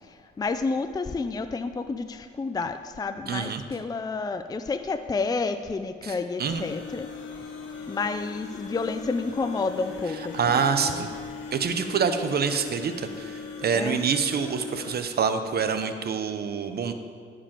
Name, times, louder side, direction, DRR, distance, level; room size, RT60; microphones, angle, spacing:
voice 1, 0.0-7.5 7.9-11.0 13.7-14.0, left 4 dB, 20° left, 9 dB, 0.5 m, -30 dB
voice 2, 3.3-3.6 6.0-6.6 10.3-11.1 11.5-16.9, right 6 dB, 50° right, 8 dB, 0.9 m, -26 dB
sound 1, 6.4-15.0, left 4 dB, 75° left, 1.7 m, -39 dB
14.5 x 5.1 x 7.5 m, 2.4 s
cardioid pair, 90°, 20 cm